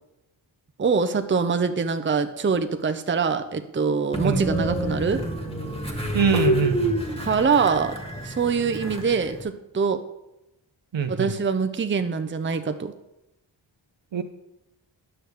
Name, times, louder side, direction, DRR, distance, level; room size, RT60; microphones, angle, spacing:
voice 1, 0.8-5.2 7.2-7.9 8.2-10.0 11.1-12.9, right 5 dB, 25° right, 8 dB, 0.6 m, -24 dB
Train, 4.1-9.4, equal, 10° left, 1.5 m, -28 dB
voice 2, 6.1-6.8 10.9-11.3 14.1-14.2, right 7 dB, 65° right, 8 dB, 0.8 m, -23 dB
10.0 x 6.3 x 3.4 m, 0.90 s
cardioid pair, 50°, 48 cm